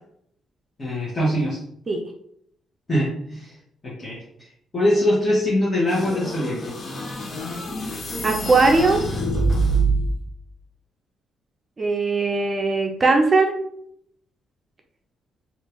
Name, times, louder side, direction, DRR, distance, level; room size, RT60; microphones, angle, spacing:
voice 1, 0.8-1.6 2.9-3.5 3.8-4.5 4.7-6.6, left 1 dB, 30° left, -9 dB, 1.3 m, -23 dB
sound 1, 5.9-10.2, right 2 dB, 45° left, 0.9 m, -25 dB
voice 2, 8.2-9.0 11.8-13.5, right 3 dB, 35° right, 3 dB, 0.6 m, -19 dB
3.3 x 2.7 x 2.9 m, 0.70 s
cardioid pair, 90°, 0 cm